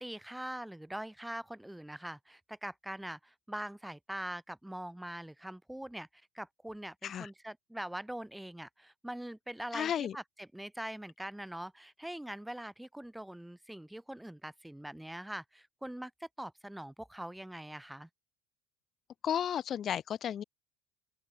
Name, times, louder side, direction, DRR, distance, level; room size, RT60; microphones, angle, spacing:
voice 1, 0.0-18.1, right 1 dB, 5° right, 1.0 m, -43 dB
voice 2, 9.7-10.1 19.2-20.4, left 9 dB, 30° left, 0.9 m, -33 dB
open air
cardioid pair, 165°, 0 cm